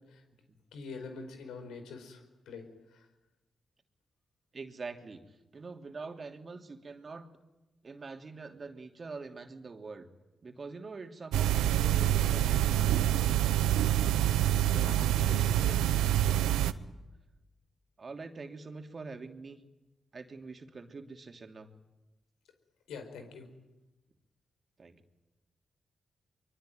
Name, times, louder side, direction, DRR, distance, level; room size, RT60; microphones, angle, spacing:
voice 1, 0.7-2.7 2.9-3.0 14.7-15.8 22.9-23.5, left 4 dB, 85° left, 6 dB, 4.9 m, -45 dB
voice 2, 4.5-7.3 7.8-10.1 10.4-13.8 16.7-16.9 18.0-19.6 20.1-21.7 24.8-25.0, right 4 dB, 50° right, 5 dB, 3.0 m, -45 dB
sound 1, 11.3-16.7, right 12 dB, 90° right, 0.8 m, -26 dB
24.0 x 23.5 x 9.3 m, 1.0 s
supercardioid pair, 45°, 0 cm